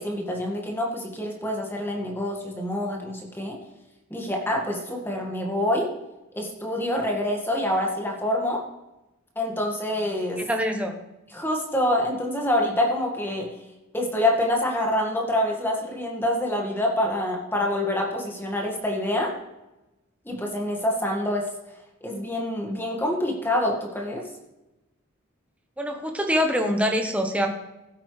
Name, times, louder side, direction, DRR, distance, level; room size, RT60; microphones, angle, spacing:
voice 1, 0.0-3.6 4.1-5.9 6.3-8.6 9.4-10.4 11.3-13.5 13.9-19.3 20.3-21.5 22.0-24.2, left 1 dB, 10° left, 0 dB, 1.8 m, -26 dB
voice 2, 10.4-10.9 25.8-27.5, equal, 5° right, 3 dB, 1.1 m, -24 dB
16.0 x 8.7 x 3.3 m, 0.98 s
head